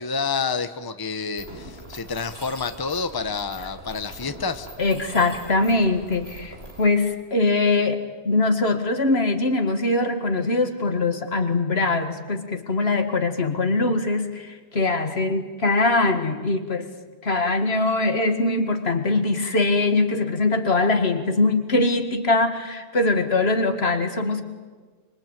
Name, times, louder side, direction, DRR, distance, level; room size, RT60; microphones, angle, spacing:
voice 1, 0.0-4.7, left 5 dB, 20° left, 10 dB, 1.0 m, -28 dB
Mechanisms, 1.4-6.8, right 1 dB, 75° right, 4.0 m, -42 dB
voice 2, 4.8-16.9 17.2-24.4, left 2 dB, 75° left, 7 dB, 2.3 m, -22 dB
25.5 x 24.5 x 9.1 m, 1.4 s
omnidirectional pair, 1.1 m